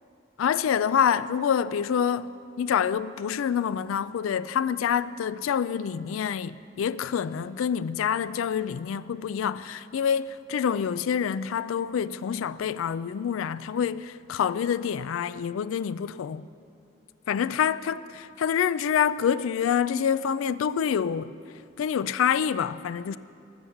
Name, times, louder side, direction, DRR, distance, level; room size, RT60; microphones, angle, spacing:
voice 1, 0.4-16.4 17.3-21.3 21.8-23.2, left 8 dB, 85° left, 0.3 m, -27 dB
19.0 x 7.1 x 7.1 m
head